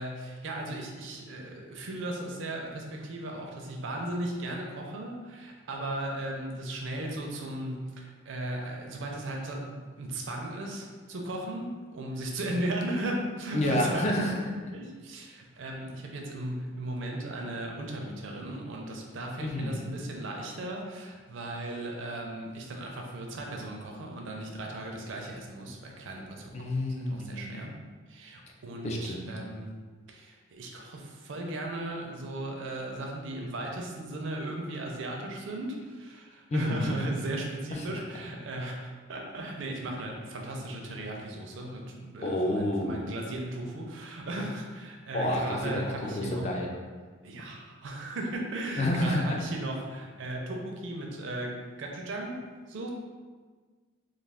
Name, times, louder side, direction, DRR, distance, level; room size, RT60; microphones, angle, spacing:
voice 1, 0.0-14.1 14.7-26.7 27.1-27.7 28.1-29.7 30.1-46.5 47.2-52.9, right 1 dB, 65° right, 1 dB, 0.4 m, -36 dB
voice 2, 13.5-14.4 19.4-19.8 26.5-27.6 28.8-29.3 36.5-36.9 37.7-37.9 42.2-43.0 45.1-45.8 46.2-46.7 48.8-49.3, left 1 dB, 30° left, 0 dB, 0.3 m, -29 dB
2.3 x 2.3 x 3.3 m, 1.5 s
head